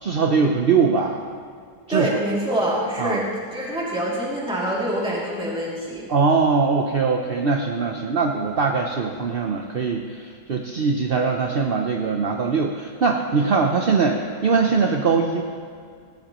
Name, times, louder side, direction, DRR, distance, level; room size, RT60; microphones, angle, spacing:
voice 1, 0.0-1.2 1.9-2.1 3.0-3.2 6.1-15.4, right 5 dB, 50° right, 2 dB, 0.7 m, -21 dB
voice 2, 1.9-6.1, right 1 dB, 5° right, -6 dB, 2.6 m, -25 dB
17.5 x 17.5 x 3.1 m, 2.2 s
omnidirectional pair, 1.9 m